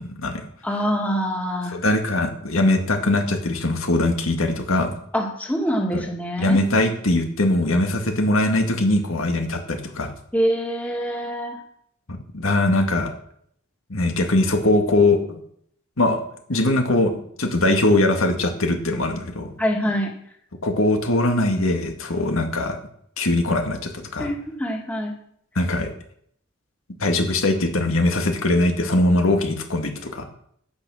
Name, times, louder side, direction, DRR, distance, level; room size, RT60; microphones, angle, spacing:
voice 1, 0.0-0.5 1.7-4.9 5.9-6.0 6.4-10.1 12.3-13.1 13.9-15.4 16.0-16.2 16.5-19.5 20.6-22.8 23.2-24.3 25.6-25.9 27.0-30.2, left 2 dB, 80° left, 4 dB, 1.9 m, -21 dB
voice 2, 0.6-1.8 5.1-6.6 10.3-11.6 19.6-20.1 24.2-25.1, equal, 5° left, 1 dB, 1.9 m, -25 dB
16.0 x 6.0 x 6.3 m, 0.67 s
head